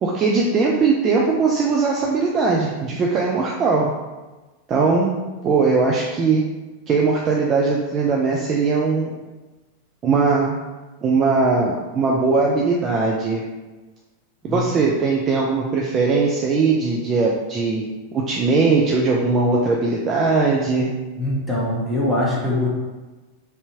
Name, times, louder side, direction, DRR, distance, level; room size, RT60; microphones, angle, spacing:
voice 1, 0.0-3.9 4.7-5.2 5.4-6.4 6.9-9.1 10.0-10.6 11.0-13.4 14.4-17.8 18.1-20.9, right 4 dB, 25° right, -2 dB, 0.4 m, -19 dB
voice 2, 21.2-22.7, left 1 dB, ahead, -7 dB, 1.0 m, -22 dB
3.3 x 2.7 x 2.8 m, 1.2 s
figure-of-eight pair, 90°, 0 cm